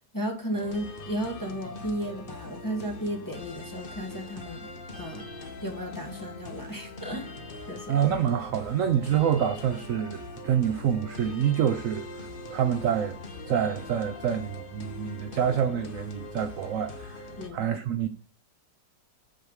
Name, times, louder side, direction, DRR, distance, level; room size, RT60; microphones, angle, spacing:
voice 1, 0.1-4.7 4.9-5.2 5.6-7.3 7.7-8.0 17.4-17.6, equal, 10° left, 1.3 m, -34 dB
sound 1, 0.5-17.5, left 2 dB, 35° left, 1.1 m, -42 dB
voice 2, 7.9-17.2 17.5-18.1, right 9 dB, 70° right, 0.8 m, -27 dB
8.8 x 3.5 x 6.2 m
omnidirectional pair, 1.9 m